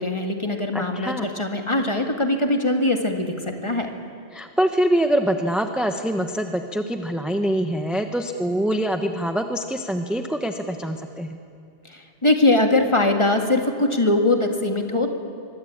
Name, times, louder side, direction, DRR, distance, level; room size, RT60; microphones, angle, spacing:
voice 1, 0.0-3.9 11.8-15.1, left 2 dB, 25° left, 4 dB, 2.0 m, -21 dB
voice 2, 0.7-1.3 4.3-11.4, right 1 dB, ahead, 6 dB, 0.9 m, -24 dB
24.5 x 21.5 x 8.7 m, 2.5 s
omnidirectional pair, 1.2 m